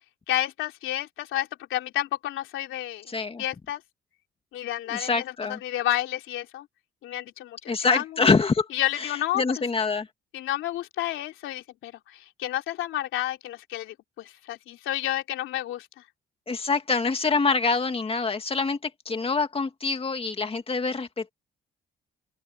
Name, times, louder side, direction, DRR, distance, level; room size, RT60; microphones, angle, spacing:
voice 1, 0.3-3.1 3.4-3.8 4.5-5.3 5.6-6.7 7.0-8.0 8.7-9.4 10.3-15.9, left 13 dB, 85° left, 3.3 m, -30 dB
voice 2, 3.1-3.4 4.9-5.6 7.7-8.7 9.0-10.1 16.5-21.3, left 4 dB, 30° left, 2.2 m, -25 dB
open air
cardioid pair, 90°, 20 cm